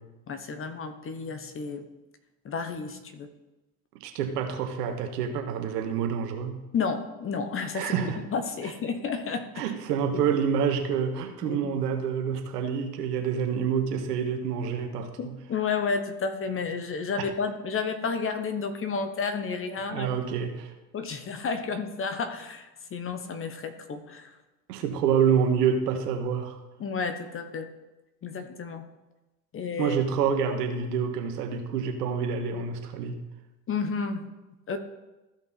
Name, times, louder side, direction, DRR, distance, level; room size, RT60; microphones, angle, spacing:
voice 1, 0.3-1.9 2.4-3.3 6.7-9.6 10.1-10.2 11.4-11.8 15.2-20.1 20.9-24.4 26.8-27.7 28.2-28.8 29.5-30.0 33.7-34.3 34.7-34.8, left 5 dB, 25° left, 9 dB, 1.0 m, -31 dB
voice 2, 4.0-6.6 7.7-8.2 9.6-15.1 19.9-20.7 24.7-26.6 29.8-33.2, right 7 dB, 70° right, 5 dB, 1.6 m, -27 dB
14.5 x 5.3 x 4.2 m, 1.1 s
hypercardioid pair, 90°, 49 cm